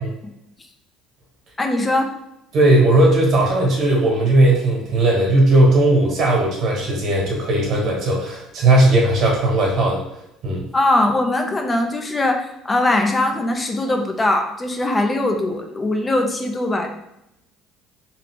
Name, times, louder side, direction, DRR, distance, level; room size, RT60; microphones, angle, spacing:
voice 1, 1.6-2.1 10.7-16.9, left 2 dB, 25° left, 4 dB, 0.7 m, -21 dB
voice 2, 2.5-10.0 10.4-10.6, right 1 dB, 60° right, -1 dB, 1.3 m, -17 dB
3.0 x 2.4 x 3.6 m, 0.83 s
hypercardioid pair, 70°, 0 cm